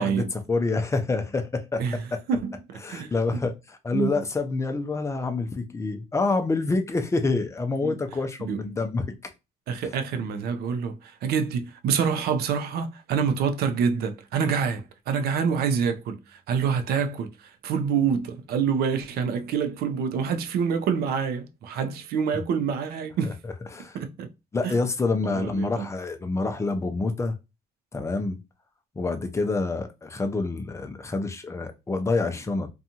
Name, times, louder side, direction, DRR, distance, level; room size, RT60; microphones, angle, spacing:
voice 1, 0.0-1.8 2.1-2.2 2.8-9.0 9.8-9.9 23.2-24.0 24.5-27.3 27.9-28.4 29.0-32.7, left 3 dB, 15° left, 0.5 m, -27 dB
voice 2, 2.3-3.4 3.9-4.3 7.8-8.0 8.4-8.6 9.7-23.4 23.9-24.3 24.6-24.7 25.2-25.9, right 6 dB, 70° right, 0.5 m, -27 dB
2.6 x 2.3 x 2.8 m
cardioid pair, 110°, 17 cm